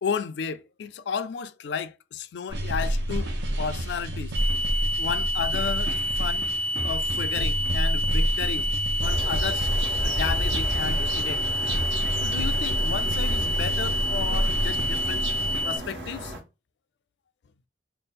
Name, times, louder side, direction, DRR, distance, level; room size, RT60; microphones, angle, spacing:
voice 1, 0.0-4.3 5.0-6.5 6.8-8.7 9.0-9.7 10.0-11.4 12.2-15.3 15.6-16.3, left 6 dB, 65° left, 0.3 m, -33 dB
sound 1, 2.5-15.6, right 1 dB, 65° right, 0.7 m, -29 dB
sound 2, 4.3-15.8, equal, 30° right, 0.5 m, -28 dB
sound 3, 9.0-16.4, right 1 dB, 85° right, 1.3 m, -33 dB
3.5 x 2.0 x 4.1 m
head